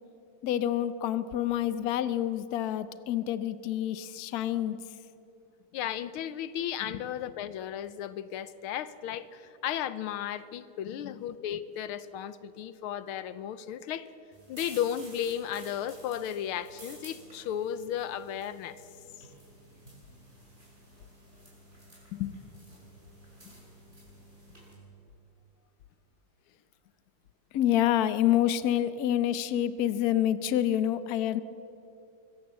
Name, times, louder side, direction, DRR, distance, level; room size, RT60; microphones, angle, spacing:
voice 1, 0.4-4.8 6.9-7.0 11.0-11.2 22.1-22.3 27.5-31.4, left 11 dB, 60° left, 1.0 m, -28 dB
voice 2, 5.7-14.1 14.5-18.8, left 10 dB, 80° left, 1.6 m, -34 dB
sound 1, 14.3-24.7, right 1 dB, 20° right, 6.8 m, -53 dB
24.0 x 16.5 x 7.5 m
omnidirectional pair, 2.3 m